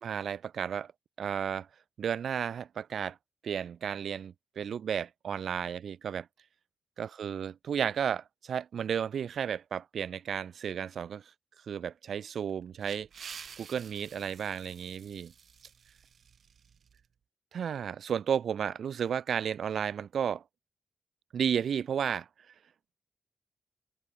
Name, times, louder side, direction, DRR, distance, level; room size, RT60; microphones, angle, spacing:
voice 1, 0.0-0.9 1.2-1.7 2.0-3.2 3.4-6.3 7.0-11.2 11.7-13.1 13.6-15.3 17.5-20.4 21.3-22.3, right 8 dB, 85° right, 1.1 m, -33 dB
sound 1, 12.5-17.0, right 7 dB, 60° right, 6.3 m, -50 dB
wide cardioid pair, 175°, 0 cm